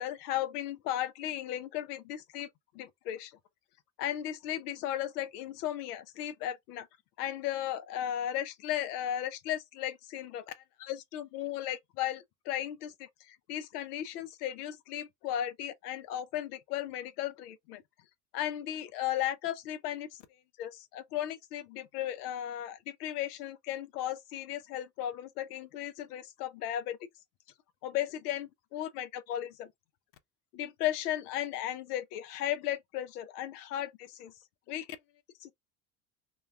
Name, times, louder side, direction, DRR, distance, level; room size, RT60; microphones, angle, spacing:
voice 1, 0.0-2.5 2.7-3.3 4.0-6.9 7.2-17.8 18.3-20.1 20.6-27.0 27.8-29.7 30.5-34.3 34.7-34.9 35.4-35.5, left 12 dB, 75° left, 0.5 m, -35 dB
2.2 x 2.2 x 3.1 m
hypercardioid pair, 70°, 46 cm